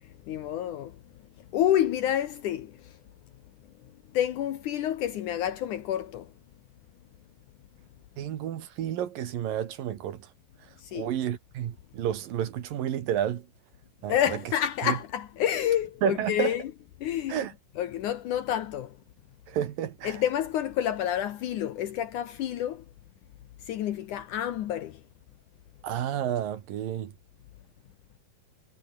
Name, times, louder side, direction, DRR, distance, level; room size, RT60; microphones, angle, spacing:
voice 1, 0.3-1.0 1.5-2.9 4.1-6.3 10.8-11.1 14.1-16.7 17.0-17.5 17.8-19.0 20.0-22.8 23.7-25.0, left 11 dB, 65° left, 2.4 m, -29 dB
voice 2, 8.2-10.3 10.9-13.4 14.0-14.1 14.8-14.9 16.0-16.5 17.3-17.5 19.5-20.2 25.8-27.1, right 10 dB, 75° right, 3.4 m, -30 dB
omnidirectional pair, 4.1 m